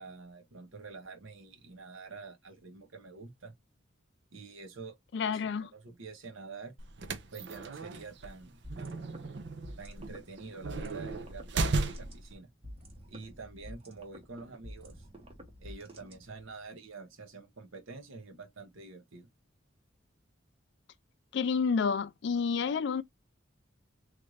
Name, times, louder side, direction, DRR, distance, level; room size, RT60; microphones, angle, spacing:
voice 1, 0.0-3.5 4.3-5.0 5.3-6.7 7.3-9.3 9.8-12.5 13.1-15.1 15.6-19.3, right 4 dB, 90° right, 1.0 m, -47 dB
voice 2, 5.1-5.7 21.3-23.0, left 5 dB, 60° left, 0.3 m, -29 dB
sound 1, 6.8-12.3, right 3 dB, 60° right, 0.6 m, -36 dB
sound 2, 8.6-16.6, equal, 30° right, 0.9 m, -50 dB
3.3 x 2.5 x 3.1 m
head